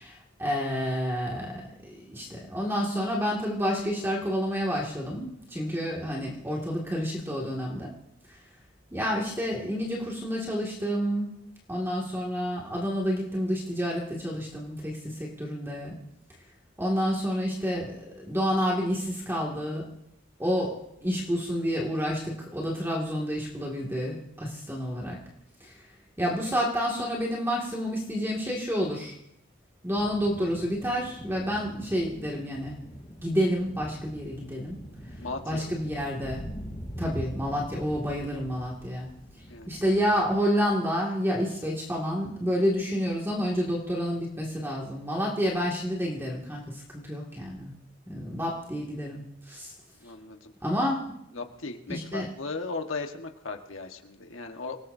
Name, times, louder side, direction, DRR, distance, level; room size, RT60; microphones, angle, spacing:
voice 1, 0.0-7.9 8.9-11.3 11.7-16.0 16.8-19.9 20.4-20.8 21.0-25.2 25.6-25.7 26.2-29.1 29.8-32.7 33.2-34.8 35.5-36.4 37.0-39.1 39.7-47.7 48.1-49.7 50.6-51.1 51.9-52.3, equal, 10° right, -3 dB, 2.2 m, -29 dB
sound 1, 29.9-40.4, equal, 20° left, 3.5 m, -43 dB
voice 2, 35.2-35.7 39.5-39.8 50.0-50.5 51.3-54.8, left 3 dB, 80° left, 4 dB, 1.5 m, -37 dB
27.0 x 18.5 x 2.7 m, 0.79 s
head